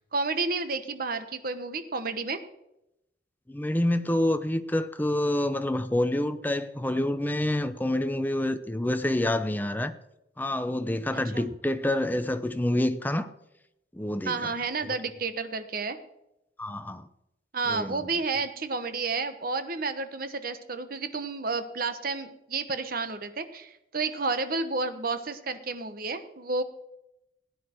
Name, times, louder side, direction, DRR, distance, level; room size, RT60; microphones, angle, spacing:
voice 1, 0.1-2.4 11.1-11.5 14.2-16.0 17.5-26.6, right 4 dB, 50° right, 1.1 m, -31 dB
voice 2, 3.5-10.0 10.4-13.3 13.9-14.5 16.6-17.1 17.7-18.0, left 1 dB, 10° left, 0.7 m, -27 dB
16.5 x 10.0 x 4.5 m
head